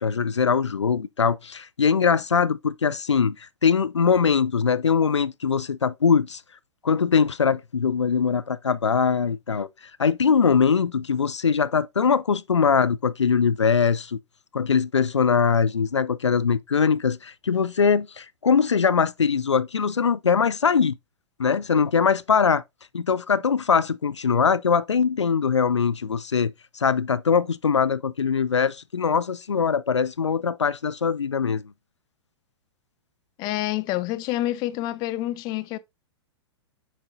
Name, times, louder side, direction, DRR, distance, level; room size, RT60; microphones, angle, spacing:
voice 1, 0.0-6.4 6.8-9.7 10.0-14.2 14.5-21.0 21.4-22.6 22.9-31.7, left 6 dB, 80° left, 0.4 m, -22 dB
voice 2, 33.4-35.8, left 15 dB, 30° left, 0.5 m, -27 dB
7.2 x 5.2 x 2.5 m
figure-of-eight pair, 105°, 15 cm